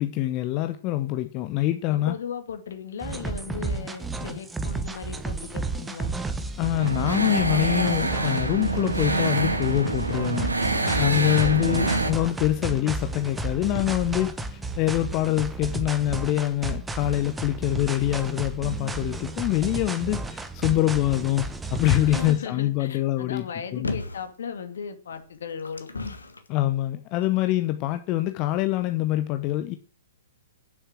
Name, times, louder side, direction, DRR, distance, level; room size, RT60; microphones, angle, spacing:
voice 1, 0.0-2.2 6.6-10.5 11.0-23.5 23.7-23.9 26.5-29.8, left 15 dB, 30° left, 0.8 m, -25 dB
voice 2, 1.9-6.1 11.0-11.8 22.0-26.2, left 7 dB, 55° left, 2.2 m, -37 dB
sound 1, 3.0-22.4, right 3 dB, 5° right, 1.1 m, -33 dB
sound 2, 6.8-12.1, right 2 dB, 75° right, 2.0 m, -26 dB
sound 3, 23.8-24.3 25.1-26.5 27.2-27.3, left 3 dB, 75° left, 1.8 m, -33 dB
9.8 x 8.0 x 7.5 m
figure-of-eight pair, 115°, 0 cm